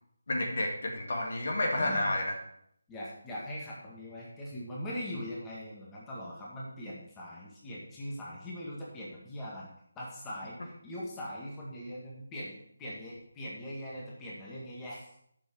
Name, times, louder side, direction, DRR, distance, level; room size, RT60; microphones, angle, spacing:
voice 1, 0.3-2.3, left 1 dB, 55° left, 1 dB, 2.0 m, -30 dB
voice 2, 1.7-2.1 2.9-9.7 10.0-15.1, equal, 10° left, -6 dB, 2.0 m, -41 dB
9.6 x 7.1 x 4.8 m, 0.71 s
figure-of-eight pair, 155°, 0 cm